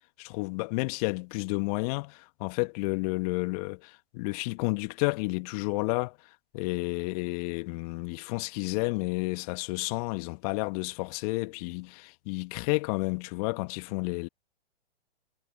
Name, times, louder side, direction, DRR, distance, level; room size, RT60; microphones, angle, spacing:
voice 1, 0.2-6.1 6.5-14.3, left 27 dB, 35° left, 1.7 m, -31 dB
figure-of-eight pair, 115°, 31 cm